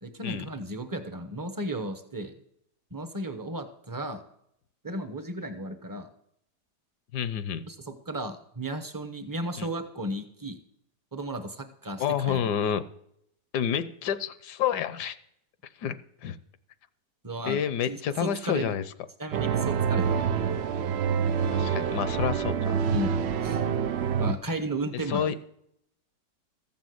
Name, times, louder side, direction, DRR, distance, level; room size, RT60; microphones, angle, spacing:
voice 1, 0.0-2.3 2.9-4.2 4.8-6.1 7.7-10.6 11.1-12.5 17.2-17.6 17.9-18.8 19.2-20.3 22.9-23.6 24.2-25.3, right 1 dB, 20° right, 7 dB, 0.5 m, -34 dB
voice 2, 7.1-7.7 9.6-9.7 12.0-12.8 13.5-15.2 15.8-16.4 17.5-18.8 21.5-22.8 25.1-25.4, left 8 dB, 70° left, 14 dB, 1.2 m, -29 dB
sound 1, 19.3-24.3, right 7 dB, 90° right, 0.5 m, -26 dB
14.0 x 7.2 x 7.8 m, 0.73 s
omnidirectional pair, 1.9 m